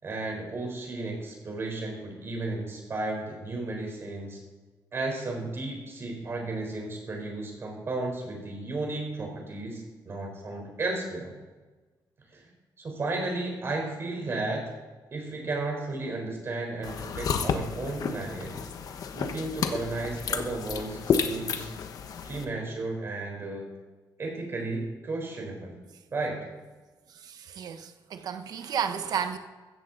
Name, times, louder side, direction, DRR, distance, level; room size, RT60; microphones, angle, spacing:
voice 1, 0.0-4.4 4.9-11.3 12.3-12.4 12.8-14.7 15.1-18.6 19.1-21.7 22.2-23.7 24.2-25.8 26.1-26.5, right 2 dB, 30° right, 1 dB, 4.0 m, -34 dB
sound 1, 16.8-22.4, left 6 dB, 50° left, 1.1 m, -31 dB
voice 2, 27.1-29.4, right 7 dB, 60° right, 8 dB, 1.2 m, -32 dB
16.0 x 13.5 x 4.0 m, 1.3 s
wide cardioid pair, 180°, 8 cm